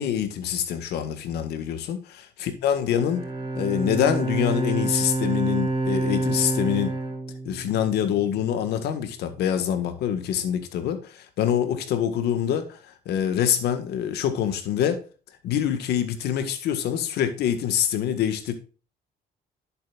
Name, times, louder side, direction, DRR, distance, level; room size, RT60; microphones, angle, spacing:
voice 1, 0.0-2.0 2.4-3.2 3.5-7.0 7.5-12.8 13.1-15.0 15.4-18.5, left 9 dB, 75° left, 9 dB, 1.7 m, -25 dB
Bowed string instrument, 2.8-8.2, right 2 dB, 30° right, 3.3 m, -28 dB
10.5 x 8.0 x 2.5 m, 0.36 s
cardioid pair, 110°, 17 cm